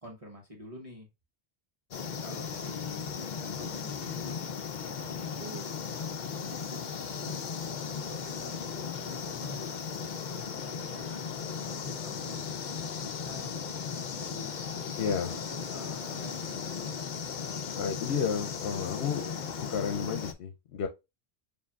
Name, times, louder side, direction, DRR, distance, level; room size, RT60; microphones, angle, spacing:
voice 1, 0.0-1.1 2.2-4.2 4.7-5.7 6.2-9.7 10.3-13.5 13.9-14.6 15.3-16.8, equal, 35° right, 1.1 m, -48 dB
sound 1, 1.9-20.3, left 6 dB, 55° left, 0.7 m, -36 dB
voice 2, 15.0-15.3 17.8-19.3 19.7-20.9, left 7 dB, 80° left, 0.9 m, -31 dB
7.0 x 2.7 x 2.3 m
omnidirectional pair, 1.1 m